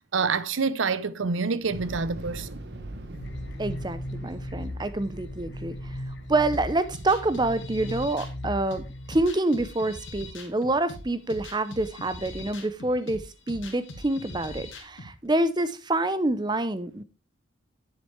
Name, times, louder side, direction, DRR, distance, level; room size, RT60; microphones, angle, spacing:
voice 1, 0.1-2.6, right 4 dB, 80° right, 0.7 m, -27 dB
Thunder / Explosion, 1.6-9.8, right 1 dB, 55° right, 1.1 m, -42 dB
sound 1, 3.1-9.2, left 1 dB, 65° left, 1.1 m, -38 dB
voice 2, 3.6-17.0, right 2 dB, 20° right, 0.6 m, -27 dB
sound 2, 6.5-15.1, left 2 dB, 80° left, 2.2 m, -42 dB
9.9 x 7.6 x 3.3 m
head